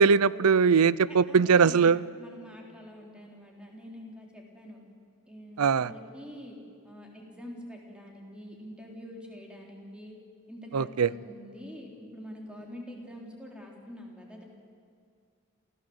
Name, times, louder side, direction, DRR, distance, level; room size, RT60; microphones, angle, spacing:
voice 1, 0.0-2.0 5.6-5.9 10.7-11.1, right 5 dB, 75° right, 20 dB, 0.5 m, -21 dB
voice 2, 1.1-4.8 5.3-6.6 6.8-10.2 10.5-14.4, equal, 5° right, 0 dB, 3.8 m, -45 dB
27.5 x 16.5 x 8.0 m, 2.3 s
head